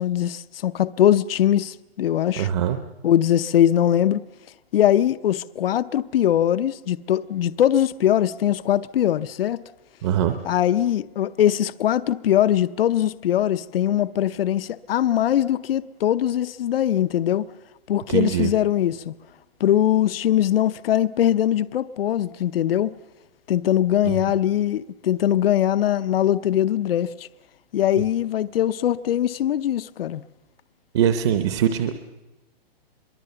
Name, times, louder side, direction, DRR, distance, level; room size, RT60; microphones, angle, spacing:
voice 1, 0.0-2.5 3.0-4.2 4.7-9.6 10.4-17.5 17.9-19.1 19.6-23.0 23.5-27.3 27.7-30.2, left 11 dB, 70° left, 0.8 m, -21 dB
voice 2, 2.4-2.8 10.0-10.3 18.1-18.5 24.0-24.2 30.9-31.9, right 10 dB, 30° right, 0.8 m, -22 dB
24.5 x 23.0 x 6.9 m
hypercardioid pair, 170°, 30 cm